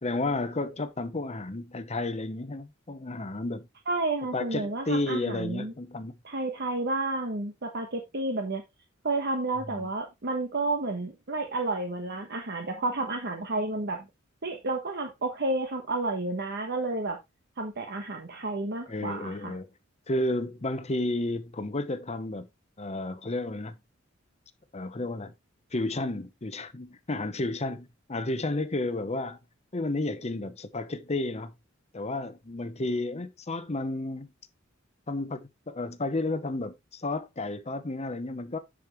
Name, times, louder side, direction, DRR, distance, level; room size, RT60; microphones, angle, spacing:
voice 1, 0.0-3.7 4.3-6.1 9.7-9.9 18.9-19.7 20.1-22.5 22.8-23.7 24.7-25.3 25.7-29.4 29.7-31.5 31.9-34.3 35.1-38.6, left 2 dB, 30° left, 0.9 m, -32 dB
voice 2, 3.9-5.7 6.2-8.6 9.0-14.0 14.4-17.2 17.6-19.5, right 2 dB, 55° right, 1.2 m, -31 dB
10.5 x 5.2 x 3.1 m
head